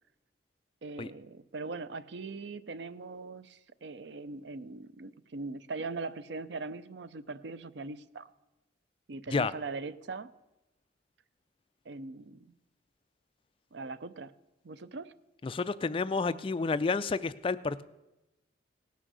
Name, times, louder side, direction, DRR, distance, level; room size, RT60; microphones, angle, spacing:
voice 1, 0.8-8.3 9.1-10.3 11.9-12.5 13.7-14.3 14.6-15.1, right 3 dB, 70° right, 15 dB, 0.5 m, -41 dB
voice 2, 15.4-17.8, left 4 dB, 30° left, 15 dB, 0.3 m, -30 dB
17.5 x 6.2 x 6.8 m, 0.98 s
head